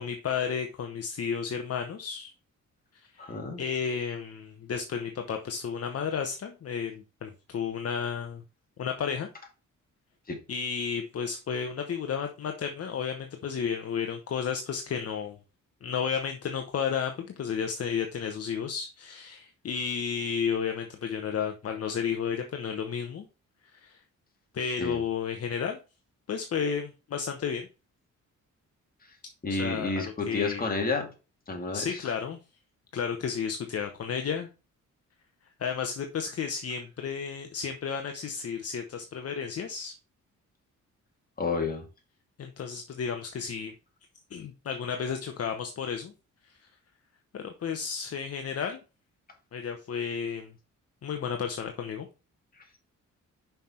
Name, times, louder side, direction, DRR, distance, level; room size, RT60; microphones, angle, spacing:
voice 1, 0.0-2.3 3.1-8.4 8.8-9.3 10.5-15.4 15.8-23.3 23.7-24.0 24.5-25.8 26.3-27.7 29.5-30.7 31.7-32.4 32.9-34.5 35.6-39.9 42.4-43.7 44.3-46.1 47.3-48.8 49.5-50.5 51.0-52.1, left 6 dB, 50° left, 5 dB, 0.9 m, -32 dB
voice 2, 3.2-3.6 10.3-10.4 24.8-25.0 29.4-31.0 31.5-32.0 41.4-41.8, left 3 dB, 30° left, 2 dB, 2.3 m, -30 dB
5.7 x 5.7 x 4.3 m, 0.31 s
cardioid pair, 110°, 31 cm